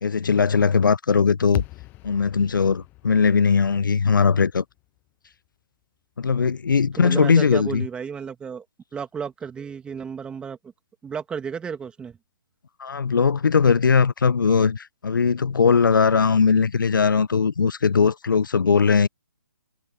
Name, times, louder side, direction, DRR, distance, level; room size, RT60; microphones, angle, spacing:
voice 1, 0.0-1.6 2.0-4.6 6.2-7.8 12.8-19.1, left 5 dB, 75° left, 0.7 m, -19 dB
sound 1, 1.5-5.8, left 21 dB, 15° left, 0.7 m, -39 dB
voice 2, 7.0-8.7 8.9-10.7 11.0-12.2, right 6 dB, 10° right, 2.0 m, -33 dB
figure-of-eight pair, 140°, 11 cm